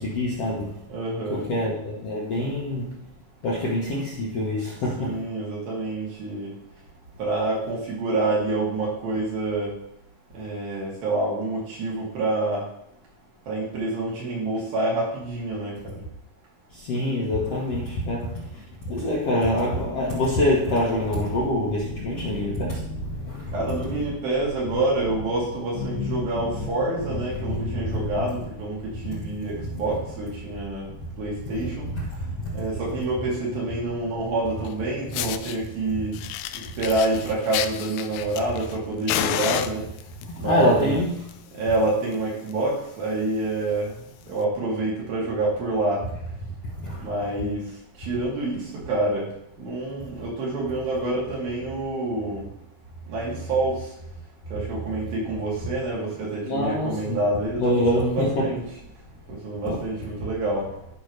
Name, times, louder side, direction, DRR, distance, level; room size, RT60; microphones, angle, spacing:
voice 1, 0.0-0.8 1.3-3.0 3.4-5.2 16.7-18.3 18.9-24.1 25.7-26.7 27.3-28.2 29.0-29.7 30.8-31.0 31.9-32.6 40.4-41.3 46.8-47.1 56.4-57.2 57.6-58.6 59.6-59.8, left 1 dB, 60° left, 1.6 m, -26 dB
voice 2, 0.9-1.4 5.0-6.5 7.2-9.7 10.3-12.6 13.5-16.0 23.5-28.8 29.0-30.9 31.2-31.9 32.5-36.1 36.8-39.8 40.4-41.0 41.5-43.9 44.3-46.0 47.0-47.6 48.0-49.3 49.6-52.5 53.1-53.8 54.5-58.6 59.4-60.6, right 2 dB, 70° right, 4.6 m, -27 dB
Fire, 34.6-34.7 35.1-35.6 36.1-38.8 39.1-40.2 41.1-41.3 41.6-41.7 42.1-42.2 42.5-42.7 43.3-43.4 44.3-44.4, left 12 dB, 85° left, 2.5 m, -30 dB
13.0 x 5.7 x 3.3 m
omnidirectional pair, 4.5 m